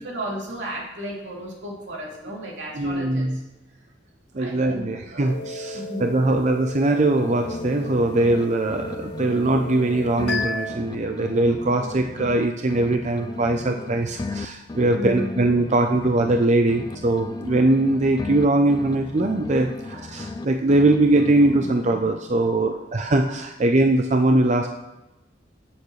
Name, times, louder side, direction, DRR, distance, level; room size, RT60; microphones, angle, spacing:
voice 1, 0.0-3.3 4.4-5.4 5.7-6.4 14.9-15.4 21.6-22.8, equal, 75° right, -3 dB, 3.0 m, -34 dB
voice 2, 2.7-3.4 4.3-24.7, right 2 dB, 40° right, 4 dB, 0.6 m, -21 dB
sound 1, 5.3-10.7, left 2 dB, 65° left, 0.9 m, -33 dB
sound 2, 6.9-8.4 8.7-12.4 12.7-16.4 16.7-20.4 20.7-22.1, left 3 dB, 20° left, 0.3 m, -35 dB
16.0 x 7.1 x 3.2 m, 0.99 s
head